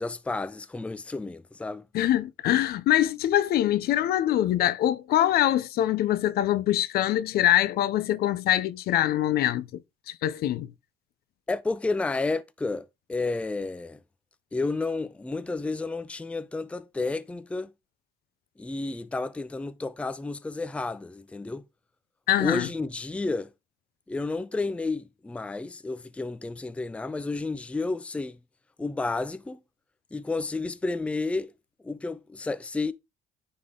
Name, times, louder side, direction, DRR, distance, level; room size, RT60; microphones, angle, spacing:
voice 1, 0.0-1.9 11.5-14.0 14.5-17.7 18.6-21.7 22.4-23.5 24.1-28.4 28.8-29.6 30.1-31.5 31.8-32.9, left 3 dB, 5° left, 0.4 m, -31 dB
voice 2, 1.9-9.7 10.2-10.7 22.3-22.7, left 12 dB, 65° left, 0.6 m, -24 dB
9.4 x 3.6 x 3.8 m
cardioid pair, 110°, 17 cm